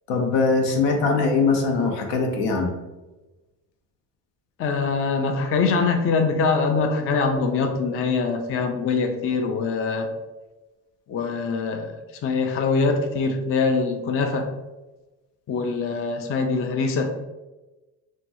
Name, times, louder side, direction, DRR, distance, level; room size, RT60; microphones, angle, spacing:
voice 1, 0.1-2.7, left 4 dB, 75° left, 3 dB, 0.7 m, -21 dB
voice 2, 4.6-10.1 11.1-14.5 15.5-17.1, left 4 dB, 35° left, 4 dB, 0.4 m, -23 dB
2.9 x 2.3 x 2.6 m, 1.1 s
supercardioid pair, 75°, 44 cm